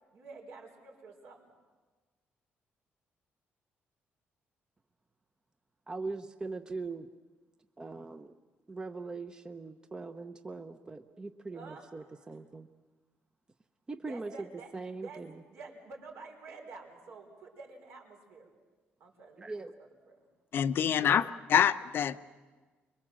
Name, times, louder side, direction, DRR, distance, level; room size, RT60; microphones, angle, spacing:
voice 1, 0.1-1.5 11.5-12.3 14.1-14.7 15.0-18.5 19.0-19.5 19.8-20.2, right 4 dB, 75° right, 1 dB, 4.7 m, -49 dB
voice 2, 5.9-7.1 7.8-8.3 8.7-12.7 13.9-14.3 14.7-15.3 19.4-19.7 21.0-21.3, right 3 dB, 20° right, 9 dB, 0.7 m, -41 dB
voice 3, 20.5-22.2, left 9 dB, 55° left, 12 dB, 0.7 m, -26 dB
24.5 x 22.5 x 7.5 m, 1.3 s
cardioid pair, 140°, 4 cm